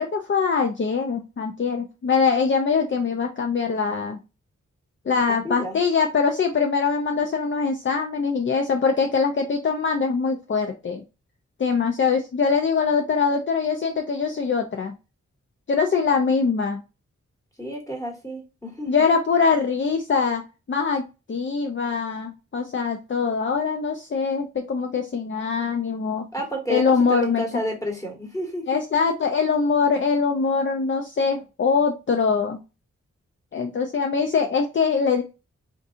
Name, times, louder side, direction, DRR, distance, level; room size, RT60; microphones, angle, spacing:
voice 1, 0.0-4.2 5.1-11.0 11.6-14.9 15.7-16.8 18.9-20.4 20.7-21.0 21.3-26.3 26.7-27.4 28.7-32.6 33.5-35.2, left 5 dB, 40° left, 4 dB, 0.5 m, -23 dB
voice 2, 5.3-5.8 17.6-19.1 26.3-28.6, equal, 10° left, 0 dB, 1.5 m, -31 dB
3.7 x 2.6 x 2.5 m, 0.28 s
cardioid pair, 55°, 29 cm